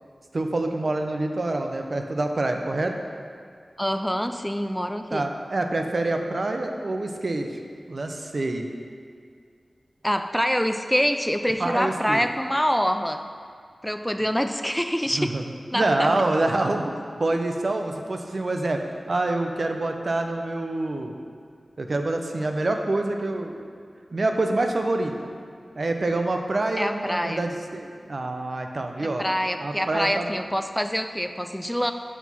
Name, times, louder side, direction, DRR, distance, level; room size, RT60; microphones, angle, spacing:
voice 1, 0.3-2.9 5.1-7.6 7.9-8.7 11.6-12.2 15.1-15.4 15.7-16.9 17.2-18.8 19.1-21.2 21.8-23.7 24.1-25.3 25.7-29.3 29.6-30.3, right 2 dB, 60° right, 4 dB, 0.6 m, -26 dB
voice 2, 3.8-5.3 10.0-13.2 13.8-15.3 15.7-16.1 26.8-27.4 29.0-31.9, equal, 5° left, 8 dB, 0.3 m, -25 dB
6.0 x 4.7 x 5.4 m, 2.2 s
cardioid pair, 45°, 0 cm